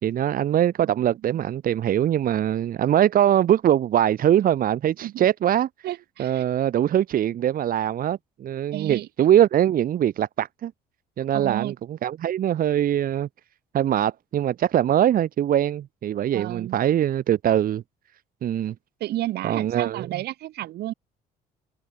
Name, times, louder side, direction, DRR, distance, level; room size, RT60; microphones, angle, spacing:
voice 1, 0.0-5.7 6.2-10.7 11.2-13.3 13.7-17.8 18.4-18.7 19.4-20.1, right 11 dB, 60° right, 3.7 m, -22 dB
voice 2, 5.8-6.4 8.7-9.1 11.3-11.7 16.3-16.8 19.0-20.9, right 15 dB, 75° right, 4.7 m, -32 dB
cardioid pair, 110°, 17 cm